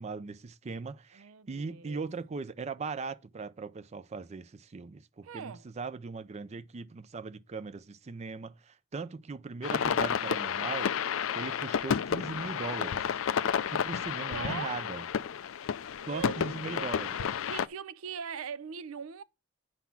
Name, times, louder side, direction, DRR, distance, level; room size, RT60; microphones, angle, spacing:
voice 1, 0.0-10.9 11.3-13.1 13.7-15.0 16.1-17.2, right 4 dB, 35° right, 0.4 m, -39 dB
voice 2, 1.1-2.1 5.2-5.6 14.3-14.8 16.0-16.4 16.6-19.2, right 6 dB, 85° right, 0.5 m, -41 dB
sound 1, 9.6-17.7, left 7 dB, 70° left, 0.4 m, -31 dB
9.4 x 4.1 x 5.7 m
head